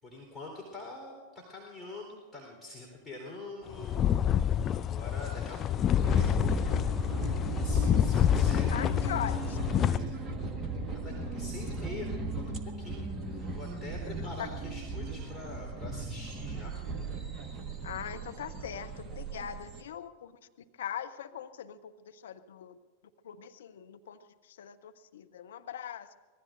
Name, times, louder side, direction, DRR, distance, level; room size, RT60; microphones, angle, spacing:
voice 1, 0.0-4.0 4.7-6.8 7.1-9.0 9.3-10.1 10.9-12.1 12.6-13.1 13.4-16.7, left 2 dB, 10° left, -3 dB, 4.2 m, -45 dB
sound 1, 3.7-10.0, left 10 dB, 30° left, 0.4 m, -27 dB
sound 2, 6.0-19.8, right 3 dB, 20° right, 1.6 m, -37 dB
voice 2, 8.7-9.4 14.4-14.5 17.8-20.3 20.8-22.8 23.2-24.2 24.5-26.1, left 10 dB, 60° left, 7 dB, 0.9 m, -40 dB
25.0 x 19.0 x 2.7 m, 1.4 s
figure-of-eight pair, 90°, 0 cm